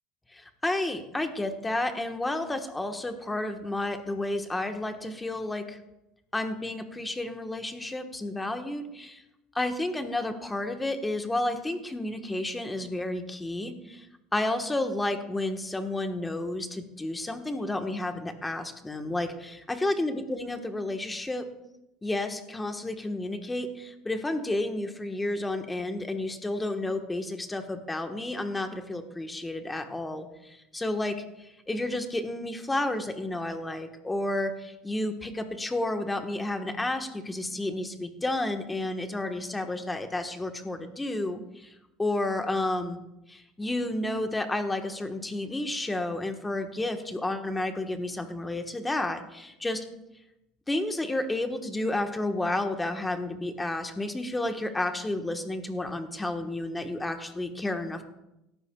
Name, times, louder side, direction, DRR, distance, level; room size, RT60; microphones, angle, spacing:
voice 1, 0.3-5.8 6.3-9.2 9.5-14.1 14.3-21.5 22.0-41.7 42.0-43.0 43.3-49.8 50.7-58.0, left 2 dB, 10° left, 6 dB, 1.3 m, -31 dB
17.0 x 12.5 x 2.3 m, 0.89 s
supercardioid pair, 115°, 0 cm